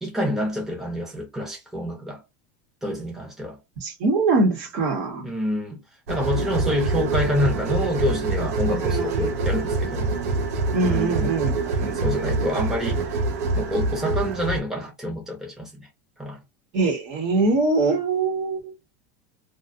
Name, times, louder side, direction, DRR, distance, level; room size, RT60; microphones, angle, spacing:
voice 1, 0.0-2.2 2.8-3.6 5.2-5.8 6.1-10.1 10.8-11.1 11.9-13.0 13.5-15.9 16.2-16.4, left 1 dB, 5° right, 0.8 m, -27 dB
voice 2, 3.8-5.3 8.7-9.3 10.7-12.0 16.7-18.8, right 3 dB, 55° right, 1.1 m, -23 dB
sound 1, 6.1-14.6, right 3 dB, 90° right, 0.7 m, -25 dB
2.5 x 2.3 x 2.5 m
supercardioid pair, 150°, 8 cm